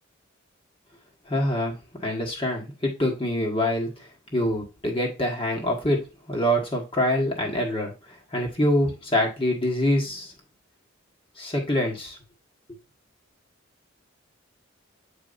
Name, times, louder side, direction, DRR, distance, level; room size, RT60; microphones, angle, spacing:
voice 1, 1.3-1.8 2.0-3.9 4.3-7.9 8.3-10.3 11.4-12.2, left 1 dB, 25° left, 0 dB, 1.5 m, -25 dB
8.3 x 4.5 x 2.6 m, 0.27 s
head